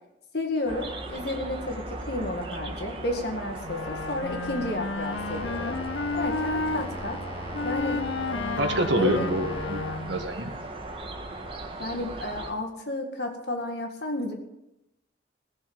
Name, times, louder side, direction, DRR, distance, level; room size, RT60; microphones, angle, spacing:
voice 1, 0.3-5.8 6.2-7.2 7.6-8.0 8.3-9.3 11.8-14.3, left 1 dB, 60° left, 3 dB, 2.0 m, -32 dB
sound 1, 0.7-12.5, right 2 dB, 25° right, 1.5 m, -38 dB
Wind instrument woodwind instrument, 3.6-6.9 7.5-10.3, left 3 dB, 80° left, 0.6 m, -32 dB
sound 2, 5.1-11.6, left 1 dB, 25° left, 1.4 m, -41 dB
voice 2, 8.6-10.5, right 1 dB, 75° right, 5 dB, 1.7 m, -27 dB
17.0 x 7.1 x 9.0 m, 0.90 s
head